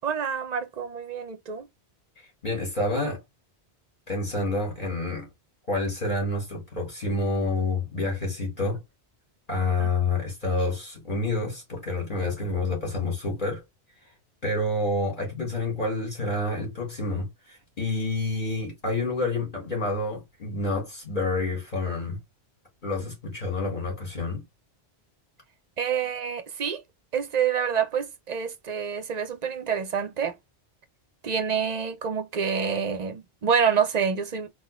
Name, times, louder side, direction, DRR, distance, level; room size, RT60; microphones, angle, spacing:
voice 1, 0.0-1.7 9.8-9.9 25.8-26.8 27.1-30.4 31.2-34.5, right 7 dB, 45° right, 0.7 m, -27 dB
voice 2, 2.4-3.2 4.1-5.3 5.7-8.8 9.5-13.6 14.4-22.2 22.8-24.4, left 2 dB, 50° left, 2.3 m, -28 dB
3.9 x 2.4 x 3.2 m
omnidirectional pair, 1.1 m